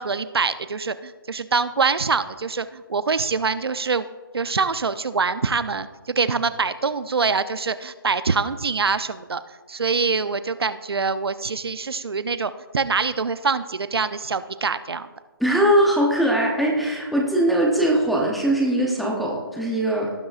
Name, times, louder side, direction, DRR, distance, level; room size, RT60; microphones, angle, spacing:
voice 1, 0.0-4.1 4.3-9.4 9.7-15.1, right 4 dB, 90° right, 13 dB, 0.6 m, -24 dB
voice 2, 15.4-20.1, right 1 dB, ahead, -4 dB, 0.7 m, -21 dB
18.0 x 8.7 x 2.5 m, 1.3 s
hypercardioid pair, 165°, 13 cm